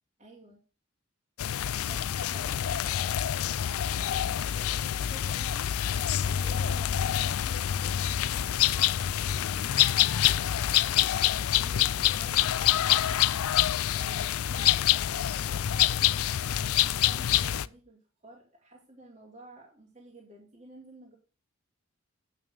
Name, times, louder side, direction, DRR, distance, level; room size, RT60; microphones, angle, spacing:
voice 1, 0.2-0.6 1.9-5.7 6.2-8.7 9.2-10.6 10.9-13.2 13.9-16.3 16.7-21.1, right 1 dB, 35° right, -4 dB, 2.7 m, -52 dB
sound 1, 1.4-17.7, left 11 dB, 85° left, 0.4 m, -26 dB
9.1 x 6.3 x 6.4 m, 0.36 s
head